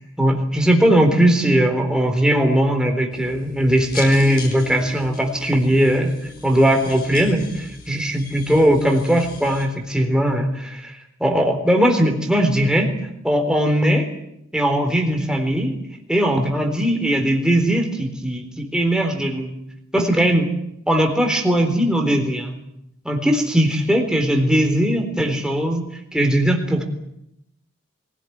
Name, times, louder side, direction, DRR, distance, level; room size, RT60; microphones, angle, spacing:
voice 1, 0.2-6.1 6.4-13.0 13.2-14.1 14.5-15.8 16.1-19.5 19.9-20.5 20.9-22.6 23.0-25.8 26.1-26.8, equal, 5° right, 3 dB, 3.8 m, -19 dB
sound 1, 3.1-9.7, left 3 dB, 45° left, 6.5 m, -39 dB
23.5 x 17.5 x 9.5 m, 0.81 s
head